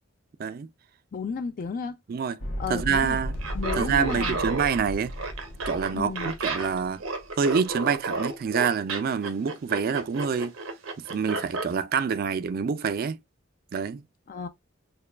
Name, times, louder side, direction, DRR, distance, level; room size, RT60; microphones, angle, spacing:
voice 1, 1.1-2.0 2.6-3.2 3.5-4.4 5.9-6.3 14.3-14.5, left 5 dB, 45° left, 0.3 m, -33 dB
sound 1, 2.4-7.6, equal, 80° left, 1.2 m, -36 dB
voice 2, 2.7-3.3 3.7-5.1 5.7-7.0 7.4-10.5 11.1-13.2 13.7-14.0, right 6 dB, 45° right, 0.3 m, -26 dB
Laughter, 3.3-11.7, right 3 dB, 90° right, 1.0 m, -32 dB
6.5 x 2.2 x 2.3 m
head